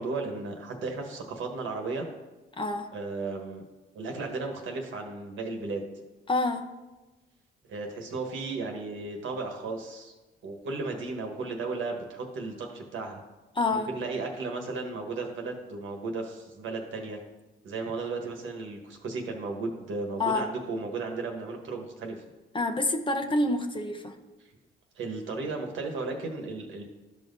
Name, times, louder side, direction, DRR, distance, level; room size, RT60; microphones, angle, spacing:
voice 1, 0.0-2.1 2.9-3.6 3.9-5.8 7.7-10.1 10.4-13.2 13.7-17.2 17.6-22.2 24.9-26.8, right 3 dB, 75° right, 2 dB, 1.4 m, -35 dB
voice 2, 2.6-2.9 6.3-6.6 13.6-13.9 20.2-20.5 22.5-24.2, left 2 dB, 25° left, 5 dB, 0.7 m, -27 dB
12.5 x 5.6 x 2.7 m, 1.1 s
cardioid pair, 90°, 20 cm